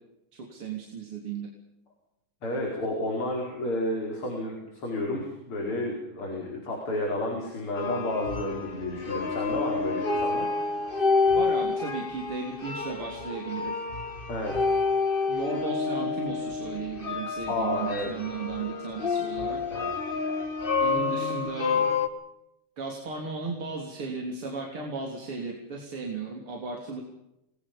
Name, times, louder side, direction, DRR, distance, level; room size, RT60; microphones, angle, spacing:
voice 1, 0.3-1.5 11.3-13.7 15.3-19.6 20.8-21.8 22.8-27.0, right 4 dB, 45° right, 0 dB, 4.2 m, -35 dB
voice 2, 2.4-10.5 14.3-14.6 17.5-18.1 19.7-19.9, left 1 dB, 40° left, 0 dB, 5.6 m, -31 dB
sound 1, 7.7-22.1, left 4 dB, 25° left, 1.2 m, -29 dB
29.5 x 21.5 x 5.5 m, 0.86 s
omnidirectional pair, 3.6 m